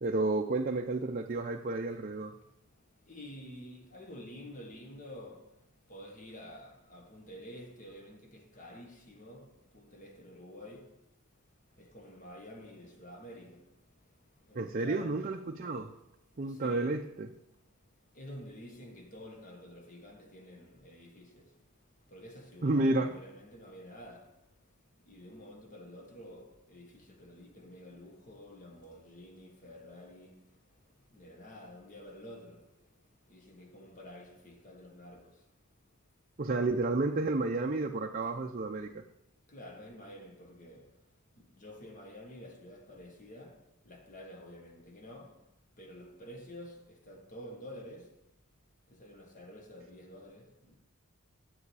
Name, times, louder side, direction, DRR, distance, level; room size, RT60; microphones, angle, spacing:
voice 1, 0.0-2.3 14.5-15.9 16.4-17.3 22.6-23.1 36.4-39.0, right 2 dB, 40° right, 0.5 m, -31 dB
voice 2, 3.1-5.6 5.9-11.0 11.8-13.7 14.5-15.3 16.4-17.1 18.1-21.5 22.1-24.4 25.0-30.4 31.1-32.7 33.3-35.4 39.5-40.9 41.4-45.4 45.8-48.2 48.9-50.8, left 1 dB, 35° left, 1.4 m, -49 dB
9.8 x 7.9 x 4.8 m
head